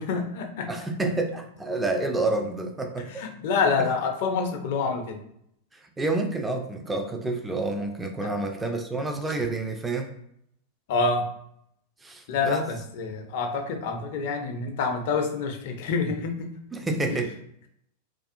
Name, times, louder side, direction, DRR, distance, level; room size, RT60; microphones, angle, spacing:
voice 1, 0.0-0.7 1.0-1.2 3.0-5.2 8.2-8.3 10.9-11.3 12.3-16.5 17.1-17.2, left 4 dB, 50° left, 4 dB, 0.4 m, -27 dB
voice 2, 0.7-3.2 5.7-10.1 12.0-12.7 16.7-17.3, right 2 dB, 10° right, 3 dB, 0.4 m, -29 dB
2.4 x 2.3 x 2.6 m, 0.73 s
figure-of-eight pair, 90°, 0 cm